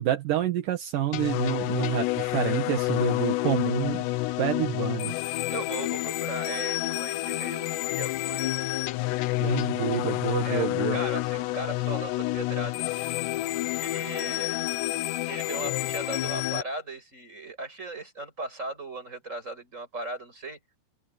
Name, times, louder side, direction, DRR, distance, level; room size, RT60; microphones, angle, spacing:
voice 1, 0.0-4.1 4.4-5.1 9.4-11.0, right 11 dB, 70° right, 2.1 m, -28 dB
sound 1, 1.1-16.6, left 18 dB, 85° left, 2.5 m, -29 dB
voice 2, 5.5-8.5 10.4-12.9 13.8-14.6 15.3-20.6, right 2 dB, 15° right, 7.0 m, -37 dB
open air
omnidirectional pair, 5.7 m